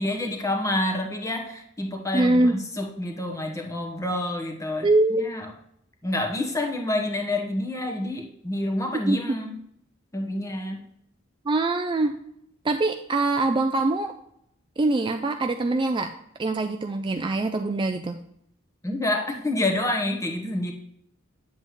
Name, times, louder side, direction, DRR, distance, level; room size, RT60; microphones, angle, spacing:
voice 1, 0.0-4.9 5.2-5.5 6.0-9.5 10.1-10.9 18.8-20.7, left 1 dB, 15° left, 2 dB, 1.1 m, -28 dB
voice 2, 2.1-2.6 4.8-5.3 9.1-9.2 11.5-12.1 12.6-14.1 14.8-16.1 16.4-18.2, right 2 dB, 25° right, 6 dB, 0.3 m, -23 dB
9.1 x 7.6 x 3.2 m, 0.72 s
head